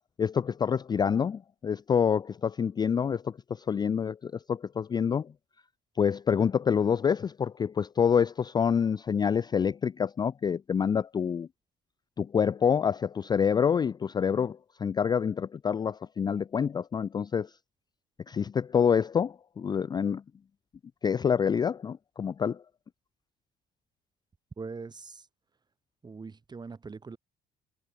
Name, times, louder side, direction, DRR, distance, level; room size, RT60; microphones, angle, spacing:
voice 1, 0.2-5.3 6.0-11.5 12.2-17.5 18.3-20.2 21.0-22.6, left 7 dB, 25° left, 0.3 m, -27 dB
voice 2, 24.6-25.3 26.0-27.2, right 4 dB, 25° right, 5.4 m, -42 dB
cardioid pair, 110°, 17 cm